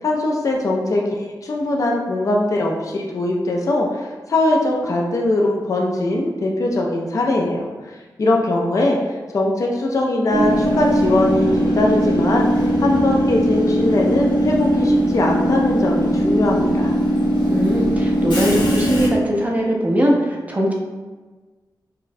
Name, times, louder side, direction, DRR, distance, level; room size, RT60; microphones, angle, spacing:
voice 1, 0.0-12.5 12.8-16.9, left 2 dB, 45° left, -1 dB, 0.4 m, -21 dB
Train / Subway metro underground, 10.3-19.1, equal, 75° left, 0.9 m, -19 dB
voice 2, 17.5-20.7, equal, 20° right, -1 dB, 0.5 m, -20 dB
4.0 x 2.1 x 2.6 m, 1.3 s
wide cardioid pair, 170°, 8 cm